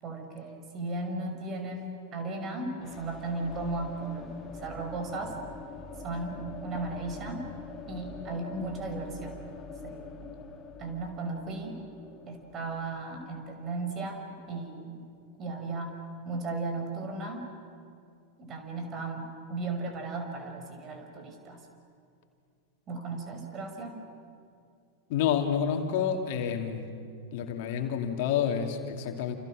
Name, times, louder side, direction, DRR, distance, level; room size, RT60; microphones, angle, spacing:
voice 1, 0.0-5.4 6.0-7.4 7.9-9.4 9.8-10.3 10.8-11.8 12.3-14.2 14.5-15.0 15.4-16.0 16.2-17.5 18.4-21.6 22.9-24.0, right 3 dB, 35° right, 5 dB, 5.8 m, -36 dB
sound 1, 2.8-14.6, left 4 dB, 25° left, 2.8 m, -44 dB
voice 2, 25.1-26.9 27.3-29.3, left 8 dB, 55° left, 4 dB, 2.7 m, -29 dB
29.5 x 29.0 x 6.4 m, 2.3 s
figure-of-eight pair, 95°, 0 cm